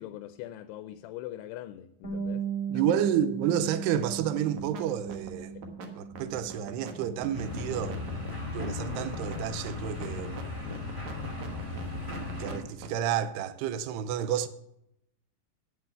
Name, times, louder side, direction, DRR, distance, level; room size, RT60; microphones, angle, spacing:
voice 1, 0.0-2.5 2.7-2.9 5.5-5.6 10.6-10.9, left 13 dB, 90° left, 2.7 m, -42 dB
Bass guitar, 2.0-8.3, right 7 dB, 25° left, 1.0 m, -38 dB
voice 2, 2.7-5.5 6.0-8.0 8.5-10.4 12.4-14.5, right 9 dB, 90° right, 2.7 m, -30 dB
sound 1, 4.4-4.8 5.1-13.0, right 5 dB, 60° right, 2.2 m, -42 dB
sound 2, 7.3-12.6, left 3 dB, 15° right, 1.0 m, -36 dB
8.9 x 8.0 x 7.9 m
omnidirectional pair, 4.7 m